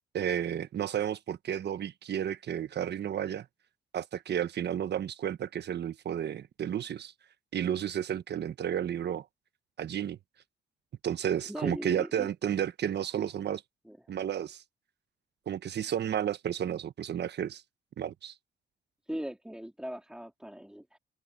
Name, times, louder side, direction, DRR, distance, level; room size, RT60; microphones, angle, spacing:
voice 1, 0.1-3.5 3.9-7.1 7.5-9.2 9.8-10.2 11.0-13.6 14.1-14.6 15.5-17.6 18.0-18.3, right 9 dB, 60° right, 1.2 m, -32 dB
voice 2, 11.5-12.3 13.8-14.0 19.1-21.0, equal, 5° right, 3.2 m, -39 dB
open air
cardioid pair, 90°, 20 cm